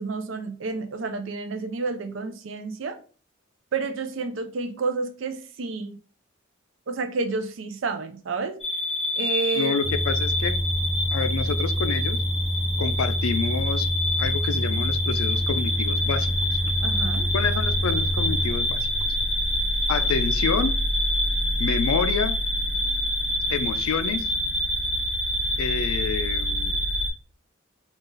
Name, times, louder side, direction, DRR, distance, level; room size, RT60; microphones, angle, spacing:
voice 1, 0.0-3.0 3.7-6.0 6.9-8.6 9.1-9.7 16.8-17.3, right 4 dB, 65° right, 0.4 m, -30 dB
sound 1, 8.6-27.1, left 1 dB, ahead, 1.6 m, -26 dB
voice 2, 9.5-10.6 11.1-12.2 12.8-13.9 14.2-16.6 17.3-18.9 19.9-20.8 21.6-22.4 23.5-24.3 25.6-26.9, left 5 dB, 80° left, 0.4 m, -28 dB
sound 2, 9.8-20.5, equal, 40° left, 0.9 m, -28 dB
3.8 x 2.4 x 3.8 m
head